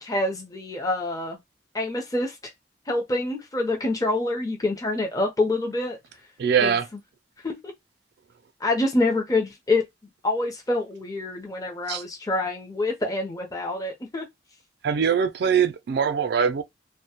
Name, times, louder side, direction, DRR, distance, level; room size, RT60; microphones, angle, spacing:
voice 1, 0.0-1.4 1.7-2.3 2.9-6.0 6.6-6.8 7.4-7.7 8.6-9.8 10.2-14.3, left 2 dB, 20° left, 0.6 m, -26 dB
voice 2, 6.4-6.9 11.9-12.0 14.8-16.6, right 7 dB, 60° right, 0.3 m, -22 dB
2.1 x 2.1 x 2.8 m
head